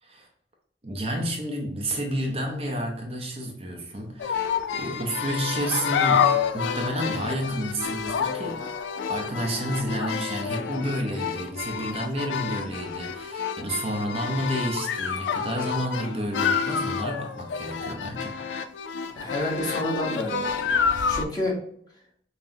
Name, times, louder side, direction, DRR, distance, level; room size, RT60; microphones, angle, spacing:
voice 1, 0.8-8.7 9.1-18.3, equal, 35° right, 1 dB, 0.5 m, -30 dB
sound 1, 4.2-21.2, left 6 dB, 90° left, 0.3 m, -28 dB
voice 2, 19.1-20.7 21.1-21.6, left 1 dB, 20° left, -4 dB, 1.1 m, -29 dB
5.6 x 2.1 x 2.7 m, 0.68 s
head